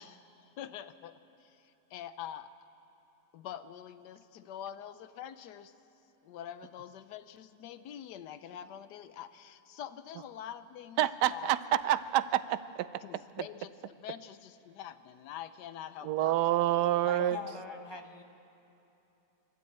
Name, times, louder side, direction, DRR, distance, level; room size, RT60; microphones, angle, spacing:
voice 1, 0.0-2.5 3.3-5.7 6.2-11.5 13.0-16.4 17.2-18.0, left 10 dB, 75° left, 12 dB, 1.3 m, -45 dB
voice 2, 11.0-12.9 16.0-17.4, right 13 dB, 75° right, 14 dB, 1.2 m, -28 dB
voice 3, 17.0-18.2, left 1 dB, 20° left, 4 dB, 0.7 m, -45 dB
24.0 x 12.5 x 8.8 m, 2.9 s
omnidirectional pair, 1.9 m